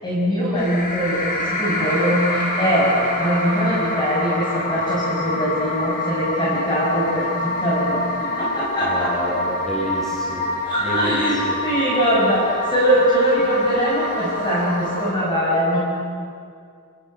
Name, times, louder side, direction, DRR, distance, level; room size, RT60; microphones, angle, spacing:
voice 1, 0.0-9.1 10.6-15.8, equal, 20° left, -6 dB, 5.9 m, -21 dB
sound 1, 0.6-15.1, left 1 dB, 40° left, 4.7 m, -26 dB
voice 2, 8.8-10.5 10.8-11.6, equal, ahead, -5 dB, 6.8 m, -28 dB
29.0 x 15.5 x 9.2 m, 2.2 s
head